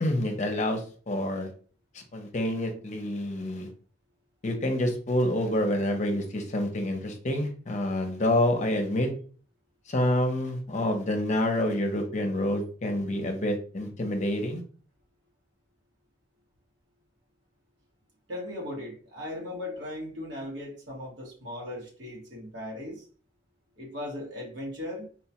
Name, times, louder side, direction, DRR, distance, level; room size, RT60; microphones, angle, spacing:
voice 1, 0.0-1.5 1.9-3.7 4.4-9.1 9.9-14.6, left 1 dB, 40° left, 4 dB, 0.7 m, -27 dB
voice 2, 18.3-23.1 23.8-25.1, left 1 dB, 85° right, -2 dB, 1.5 m, -38 dB
4.3 x 2.2 x 2.8 m, 0.42 s
head